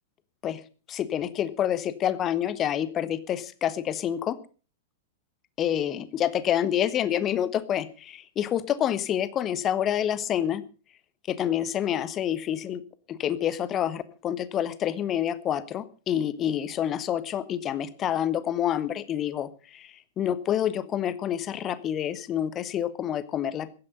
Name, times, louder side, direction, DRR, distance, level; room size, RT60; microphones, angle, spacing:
voice 1, 0.9-4.4 5.6-10.6 11.3-12.8 13.1-23.7, left 10 dB, 25° left, 16 dB, 1.3 m, -28 dB
16.0 x 12.5 x 5.6 m, 0.37 s
figure-of-eight pair, 100°, 0 cm